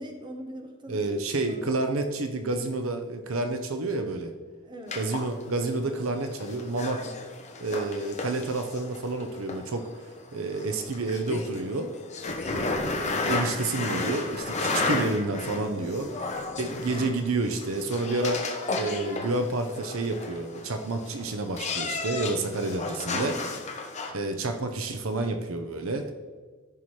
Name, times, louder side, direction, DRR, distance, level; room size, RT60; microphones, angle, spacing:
voice 1, 0.0-1.7 4.6-5.0 10.7-11.0 15.7-16.2 23.1-23.5, right 1 dB, 20° right, 2 dB, 1.1 m, -42 dB
voice 2, 0.9-4.3 5.0-7.0 7.6-9.9 10.3-11.9 12.5-16.1 16.6-23.4 24.1-26.1, right 2 dB, 65° right, 6 dB, 0.7 m, -29 dB
meowmeow miumiu, 4.9-24.1, left 3 dB, 30° left, 0.8 m, -33 dB
13.5 x 5.7 x 3.2 m, 1.4 s
head